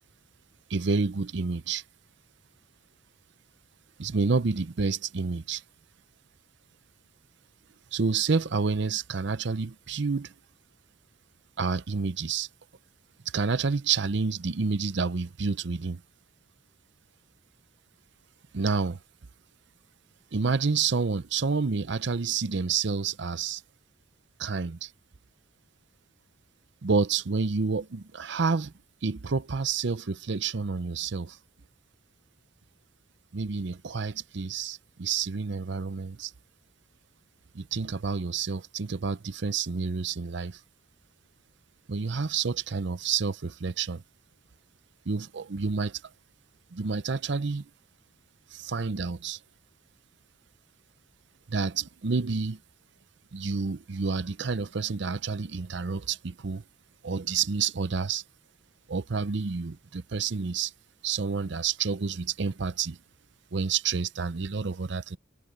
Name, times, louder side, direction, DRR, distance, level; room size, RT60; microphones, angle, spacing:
voice 1, 0.7-1.8 4.0-5.6 7.9-10.3 11.6-12.5 13.3-16.0 18.5-19.0 20.3-23.6 24.4-24.9 26.8-28.7 29.0-31.4 33.3-36.3 37.5-40.6 41.9-44.0 45.1-46.0 46.7-47.6 48.5-49.4 51.5-52.6 53.3-56.6 57.0-58.2 58.9-60.7 61.0-63.0 63.5-65.2, right 5 dB, 60° right, 0.6 m, -29 dB
head